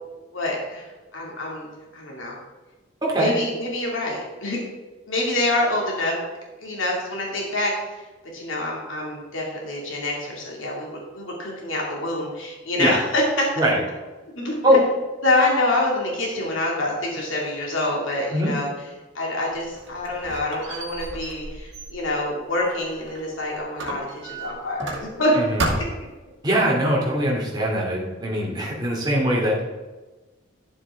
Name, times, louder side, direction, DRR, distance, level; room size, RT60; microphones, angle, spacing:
voice 1, 0.3-1.7 1.9-2.4 3.1-4.6 5.1-6.2 6.6-7.7 8.3-13.5 14.3-14.8 15.2-18.7 19.1-25.3 25.8-25.9, left 2 dB, 80° left, -2 dB, 2.5 m, -26 dB
voice 2, 3.0-3.3 12.8-13.0 13.6-13.8 14.6-14.8 18.3-18.5 25.3-25.7 26.4-29.6, equal, 20° right, -4 dB, 2.5 m, -21 dB
Squeak, 19.5-23.3 23.8-25.3 25.6-26.2, right 2 dB, 65° right, 2.2 m, -32 dB
12.0 x 7.3 x 3.6 m, 1.2 s
head